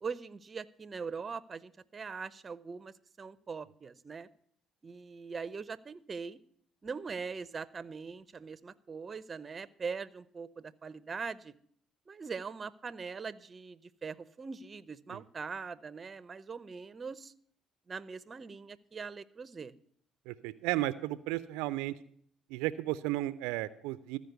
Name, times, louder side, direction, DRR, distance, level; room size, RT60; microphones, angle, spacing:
voice 1, 0.0-4.3 4.8-6.4 6.8-11.5 12.1-17.3 17.9-19.7, right 5 dB, 35° right, 18 dB, 0.6 m, -42 dB
voice 2, 20.3-22.0 22.5-24.2, right 16 dB, 85° right, 16 dB, 0.4 m, -34 dB
14.0 x 5.1 x 7.8 m, 0.62 s
supercardioid pair, 70°, 0 cm